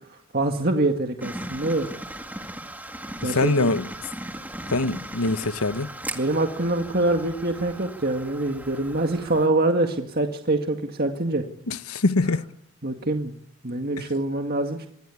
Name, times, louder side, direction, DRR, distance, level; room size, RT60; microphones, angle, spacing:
voice 1, 0.1-1.9 3.2-3.7 6.2-11.5 12.8-13.3 13.6-14.9, right 2 dB, 45° right, 1.9 m, -25 dB
sound 1, 1.2-9.5, right 1 dB, 10° right, 2.0 m, -38 dB
voice 2, 3.2-3.9 4.7-5.9 11.7-12.4, left 3 dB, 85° left, 1.2 m, -23 dB
25.5 x 21.5 x 8.4 m
head